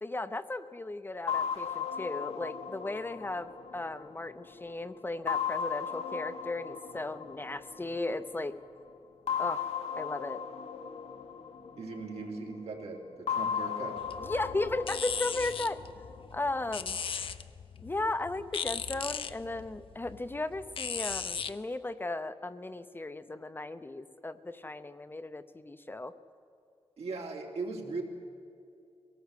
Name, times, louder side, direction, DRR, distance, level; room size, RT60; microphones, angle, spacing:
voice 1, 0.0-8.6 9.4-9.7 10.0-10.4 14.2-15.8 16.3-17.0 17.8-26.1, left 2 dB, 20° left, 10 dB, 0.7 m, -36 dB
sound 1, 1.3-4.6 5.3-8.2 9.3-12.4 13.3-16.4, left 7 dB, 85° left, 1.5 m, -36 dB
voice 2, 11.8-14.0 27.0-28.0, right 3 dB, 80° right, 0 dB, 3.3 m, -39 dB
sound 2, 14.0-21.5, left 6 dB, 60° left, 0.7 m, -38 dB
22.5 x 18.0 x 8.3 m, 2.5 s
wide cardioid pair, 140°, 10 cm